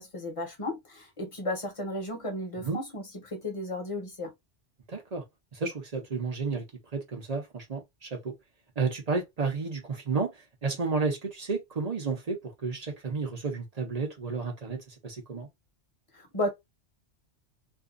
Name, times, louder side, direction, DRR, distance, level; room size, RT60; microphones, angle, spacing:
voice 1, 0.0-4.3 16.1-16.5, left 1 dB, 30° left, 0.9 m, -34 dB
voice 2, 4.9-5.2 5.5-6.6 6.9-8.3 8.8-15.5, right 4 dB, 40° right, 0.7 m, -32 dB
2.6 x 2.3 x 2.4 m
omnidirectional pair, 1.2 m